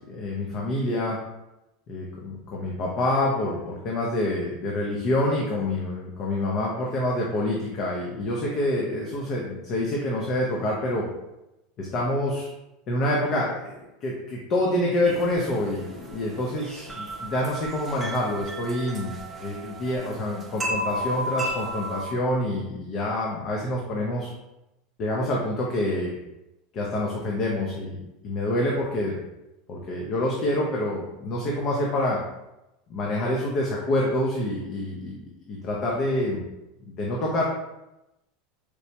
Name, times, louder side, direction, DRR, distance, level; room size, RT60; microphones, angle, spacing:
voice 1, 0.1-1.2 1.9-11.1 11.8-12.5 12.9-24.3 25.0-26.2 26.7-29.2 29.7-32.2 32.9-35.2 35.5-36.4 37.0-37.5, left 1 dB, 40° left, -2 dB, 0.5 m, -27 dB
sound 1, 15.0-22.0, equal, 10° right, 0.5 m, -34 dB
4.5 x 2.0 x 2.8 m, 0.93 s
supercardioid pair, 145°, 0 cm